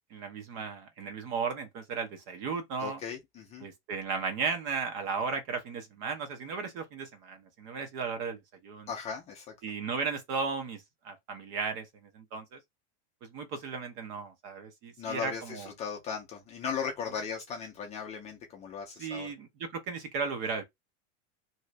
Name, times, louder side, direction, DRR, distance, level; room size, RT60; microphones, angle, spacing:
voice 1, 0.1-3.0 3.6-8.9 9.6-12.6 13.2-15.7 19.0-20.6, right 5 dB, 40° right, 0.8 m, -35 dB
voice 2, 2.8-3.7 8.9-9.5 15.0-19.3, left 6 dB, 20° left, 0.5 m, -37 dB
2.7 x 2.4 x 3.2 m
supercardioid pair, 160°, 35 cm